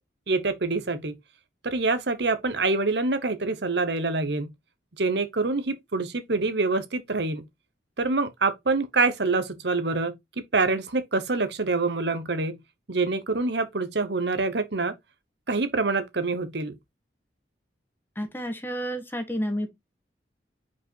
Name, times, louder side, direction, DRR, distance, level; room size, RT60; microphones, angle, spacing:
voice 1, 0.3-1.1 1.6-4.5 5.0-7.4 8.0-10.1 10.5-12.6 12.9-14.9 15.5-16.7, right 3 dB, 65° right, 1.1 m, -26 dB
voice 2, 18.1-19.7, equal, 10° left, 1.2 m, -30 dB
5.2 x 5.2 x 4.6 m
head